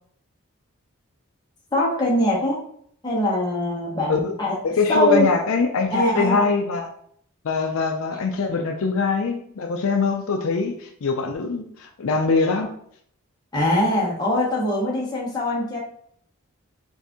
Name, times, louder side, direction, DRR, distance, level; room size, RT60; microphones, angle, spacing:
voice 1, 1.7-2.6 3.0-4.5 4.9-5.3 5.9-6.5 13.5-15.8, left 1 dB, 20° left, -4 dB, 1.1 m, -22 dB
voice 2, 4.6-6.9 7.4-12.7, left 4 dB, 70° left, 4 dB, 0.4 m, -23 dB
4.1 x 2.6 x 3.5 m, 0.64 s
head